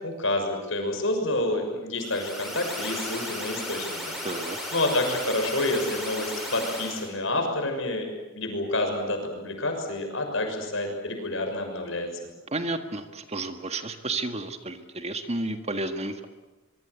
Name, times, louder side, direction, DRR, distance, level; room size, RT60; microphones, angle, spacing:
voice 1, 0.0-8.1 8.3-12.1, left 2 dB, 70° left, 4 dB, 6.4 m, -28 dB
sound 1, 2.0-7.1, equal, ahead, 7.7 m, -35 dB
voice 2, 4.2-4.6 12.5-16.3, right 2 dB, 30° right, 8 dB, 1.7 m, -31 dB
25.0 x 23.0 x 8.3 m, 1.1 s
head